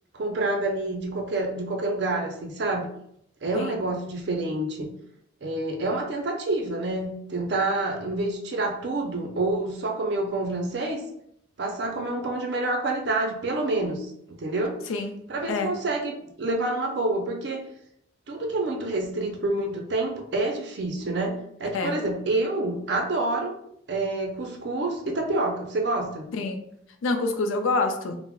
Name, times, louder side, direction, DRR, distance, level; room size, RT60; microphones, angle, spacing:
voice 1, 0.1-2.9 3.4-4.9 5.4-11.0 11.6-14.1 14.4-14.8 15.3-17.7 18.3-23.5 23.9-26.3, right 2 dB, 55° right, 2 dB, 0.5 m, -28 dB
voice 2, 27.0-28.2, left 3 dB, 85° left, 6 dB, 0.4 m, -26 dB
2.2 x 2.0 x 3.4 m, 0.73 s
head